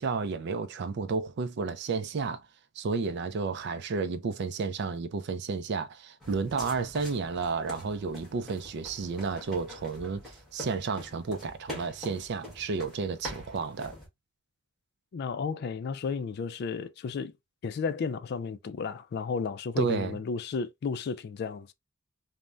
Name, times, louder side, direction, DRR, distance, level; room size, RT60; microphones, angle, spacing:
voice 1, 0.0-2.4 2.8-13.9 19.8-20.2, right 4 dB, 55° right, 0.4 m, -32 dB
sound 1, 6.2-14.1, left 1 dB, ahead, 1.4 m, -45 dB
voice 2, 15.1-17.3 17.6-21.7, left 5 dB, 50° left, 0.3 m, -33 dB
3.2 x 2.1 x 2.4 m
head